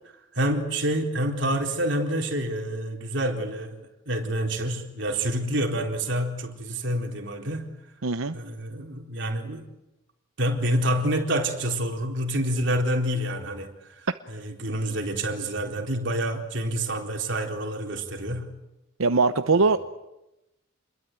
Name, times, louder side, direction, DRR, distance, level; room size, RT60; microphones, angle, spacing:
voice 1, 0.3-7.7 8.3-9.6 10.4-18.5, right 1 dB, 60° right, 2 dB, 4.1 m, -28 dB
voice 2, 8.0-8.3 19.0-19.8, right 3 dB, 90° right, 9 dB, 0.9 m, -21 dB
28.5 x 22.0 x 9.3 m, 0.96 s
head